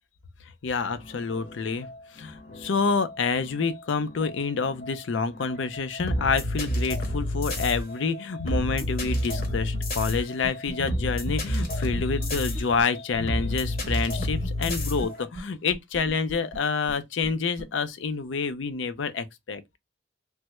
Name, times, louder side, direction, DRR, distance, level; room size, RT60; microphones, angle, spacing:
voice 1, 0.6-1.9 2.1-19.6, left 5 dB, 75° left, 0.5 m, -28 dB
sound 1, 1.0-15.2, left 1 dB, 50° left, 0.8 m, -30 dB
sound 2, 8.4-9.1 9.4-9.5 9.7-9.8 10.1-10.2 10.4-11.0 11.3-11.4 11.6-11.7 12.0-12.8 13.1-13.2 13.5-13.6 13.8-13.9 14.2-14.7 15.0-15.1 15.4-15.5 15.7-16.6 16.9-17.0 17.2-17.3 17.6-17.7, right 1 dB, 30° right, 0.7 m, -37 dB
3.3 x 2.1 x 2.9 m
head